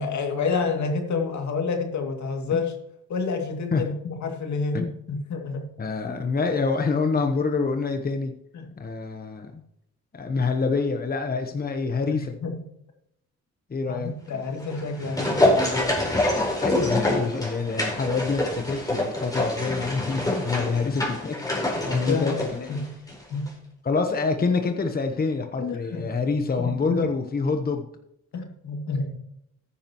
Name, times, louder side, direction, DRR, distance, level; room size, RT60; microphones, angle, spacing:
voice 1, 0.0-2.7 3.1-5.7 8.5-8.7 12.1-12.6 13.9-16.0 20.8-20.9 21.8-22.9 23.3-23.5 25.6-26.0 26.6-27.0 28.3-29.2, left 4 dB, 75° left, 3 dB, 2.5 m, -29 dB
voice 2, 5.8-8.3 8.8-9.6 10.1-12.4 13.7-14.4 16.6-22.7 23.8-27.9, left 4 dB, 30° left, 5 dB, 1.1 m, -26 dB
sound 1, 14.6-23.2 23.5-23.6, left 1 dB, 15° left, 4.5 m, -26 dB
14.5 x 10.0 x 3.0 m, 0.78 s
cardioid pair, 110°, 29 cm